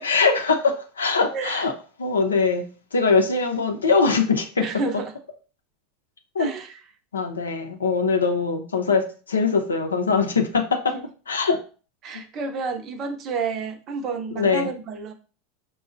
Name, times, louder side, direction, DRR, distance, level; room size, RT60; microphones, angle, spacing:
voice 1, 0.0-1.7 2.0-4.7 6.3-6.5 7.1-10.9 11.3-11.6 12.1-12.2 14.3-14.7, left 4 dB, 85° left, 4 dB, 0.6 m, -22 dB
voice 2, 1.3-1.6 4.6-5.1 6.4-6.7 12.0-15.1, right 4 dB, 45° right, 7 dB, 0.6 m, -30 dB
5.4 x 2.2 x 2.5 m, 0.38 s
figure-of-eight pair, 80°, 0 cm